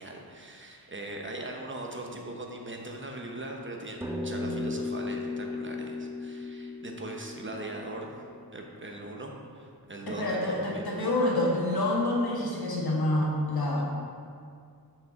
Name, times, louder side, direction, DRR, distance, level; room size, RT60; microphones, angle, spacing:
voice 1, 0.0-8.1 8.5-10.8, right 2 dB, 30° right, 1 dB, 0.9 m, -40 dB
sound 1, 4.0-8.7, left 3 dB, 5° right, 0.6 m, -36 dB
voice 2, 10.1-13.9, left 1 dB, 70° left, -3 dB, 1.6 m, -27 dB
6.2 x 5.2 x 5.2 m, 2.3 s
wide cardioid pair, 85°, 38 cm